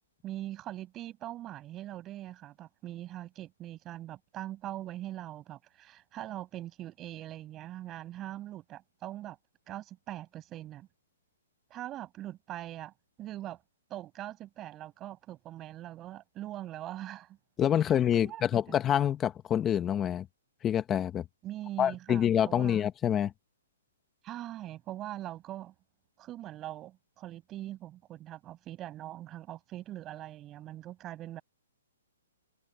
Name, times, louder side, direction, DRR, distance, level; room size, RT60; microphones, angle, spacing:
voice 1, 0.2-9.4 9.7-10.9 11.7-13.6 13.9-17.4 17.8-17.9 18.1-18.7 21.4-22.8 24.2-25.7 26.2-31.4, right 14 dB, 20° right, 6.7 m, -42 dB
voice 2, 17.6-20.3 20.6-21.2 21.8-23.3, left 10 dB, 15° left, 1.3 m, -27 dB
hypercardioid pair, 155°, 0 cm